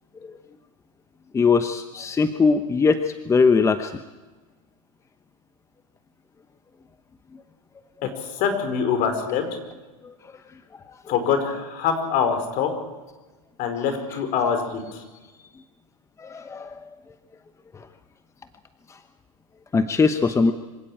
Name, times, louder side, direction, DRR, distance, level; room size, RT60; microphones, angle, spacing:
voice 1, 1.3-3.0 3.3-3.9 16.2-16.7 19.7-20.5, left 4 dB, 15° left, 9 dB, 1.0 m, -20 dB
voice 2, 8.0-9.6 11.1-12.7 13.6-15.0, left 7 dB, 50° left, 8 dB, 5.1 m, -24 dB
25.5 x 16.5 x 9.0 m, 1.2 s
hypercardioid pair, 115°, 19 cm